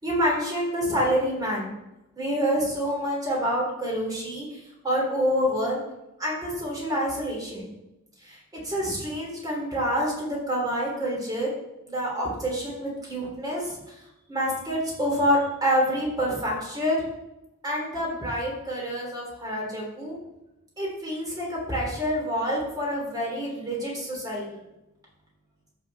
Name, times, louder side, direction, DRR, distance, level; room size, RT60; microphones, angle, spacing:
voice 1, 0.0-1.7 2.2-5.8 6.2-7.7 8.2-8.4 8.6-11.5 11.9-13.8 14.3-17.0 17.6-20.2 20.8-24.6, equal, 20° right, -3 dB, 3.5 m, -27 dB
13.5 x 6.2 x 4.2 m, 0.93 s
head